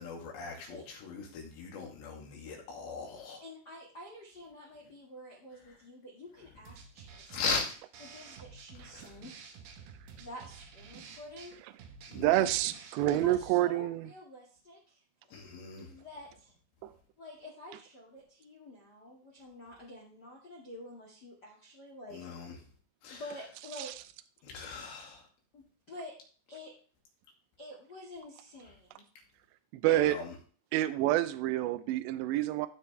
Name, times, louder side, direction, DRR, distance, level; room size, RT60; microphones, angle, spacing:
voice 1, 0.0-3.4 5.7-5.8 7.3-7.7 8.9-9.2 12.1-12.5 15.3-16.0 22.1-22.6 23.0-23.2 24.4-25.3 29.9-30.3, left 4 dB, 75° left, 0 dB, 4.4 m, -39 dB
voice 2, 3.4-7.6 8.0-9.3 10.1-11.5 13.1-15.0 15.3-15.4 15.9-16.6 17.2-22.5 23.1-23.9 25.5-26.1 26.5-26.7 27.6-29.0 29.8-30.2, left 1 dB, 40° left, -3 dB, 1.5 m, -48 dB
sound 1, 6.7-13.5, right 5 dB, 65° right, 2.6 m, -50 dB
voice 3, 12.1-14.0 16.8-16.9 23.8-23.9 29.7-30.2 30.7-32.7, right 15 dB, 85° right, 11 dB, 2.7 m, -28 dB
15.0 x 6.2 x 3.3 m, 0.40 s
omnidirectional pair, 5.2 m